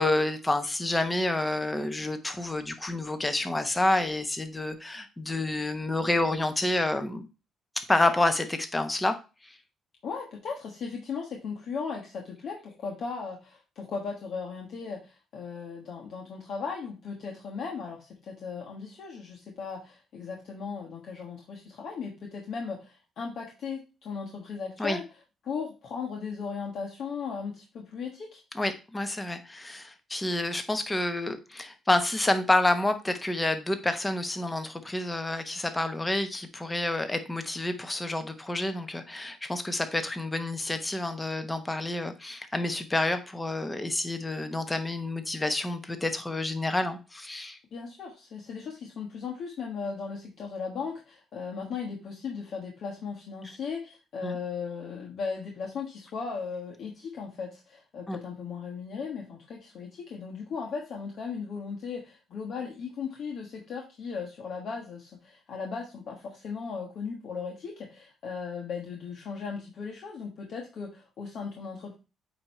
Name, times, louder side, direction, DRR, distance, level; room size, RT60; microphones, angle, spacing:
voice 1, 0.0-7.3 7.9-9.5 24.8-25.0 28.5-47.6 54.2-54.4 58.1-58.2, left 2 dB, 15° left, 1.0 m, -29 dB
voice 2, 10.0-25.0 25.4-28.4 47.7-71.9, left 5 dB, 65° left, 1.4 m, -37 dB
8.6 x 2.9 x 4.4 m
cardioid pair, 90°, 0 cm